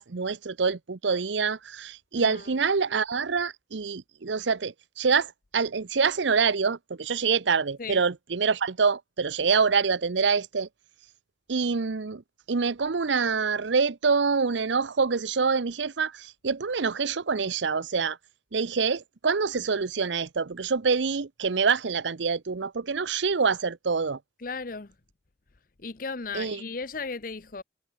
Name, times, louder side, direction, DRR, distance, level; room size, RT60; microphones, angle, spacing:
voice 1, 0.0-10.7 11.5-12.2 12.5-18.2 18.5-24.2 26.3-26.6, right 5 dB, 80° right, 0.7 m, -26 dB
voice 2, 2.1-2.5 7.8-8.0 24.4-24.9 25.8-27.6, left 4 dB, 50° left, 0.8 m, -36 dB
head